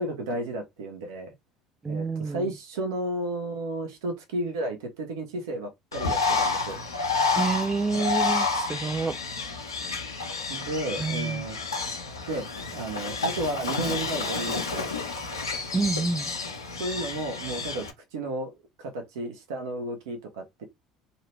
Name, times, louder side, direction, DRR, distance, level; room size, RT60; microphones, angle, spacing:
voice 1, 0.0-1.3 1.9-6.8 10.5-11.6 12.3-12.5 12.7-14.9 16.7-18.5 18.8-20.6, right 1 dB, 70° right, 0.7 m, -33 dB
voice 2, 1.8-2.5 7.3-9.2 11.0-11.5 15.7-16.3, right 4 dB, 20° right, 0.3 m, -28 dB
Bird, 5.9-17.9, left 4 dB, 85° left, 0.5 m, -30 dB
2.6 x 2.2 x 2.9 m
figure-of-eight pair, 65°, 2 cm